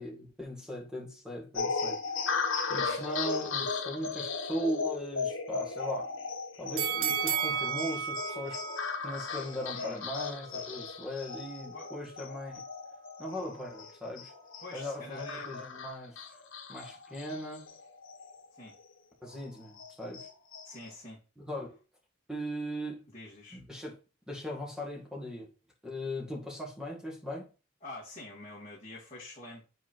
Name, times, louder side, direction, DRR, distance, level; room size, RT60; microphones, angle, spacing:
voice 1, 0.0-2.0 2.7-6.1 6.6-8.6 9.0-12.6 13.2-14.3 14.7-16.3 16.7-17.7 19.2-20.3 21.4-21.8 22.3-23.1 23.5-24.0 24.3-25.5 25.8-27.5, equal, 5° right, 1.7 m, -38 dB
sound 1, 1.5-18.4 18.8-18.9 19.3-20.9, left 4 dB, 70° left, 1.2 m, -36 dB
sound 2, 6.8-9.9 10.3-10.4, right 9 dB, 75° right, 0.8 m, -33 dB
voice 2, 14.6-15.6 18.5-18.8 20.6-21.2 23.1-23.6 27.8-29.6, left 2 dB, 30° left, 2.5 m, -46 dB
5.3 x 4.2 x 4.4 m
head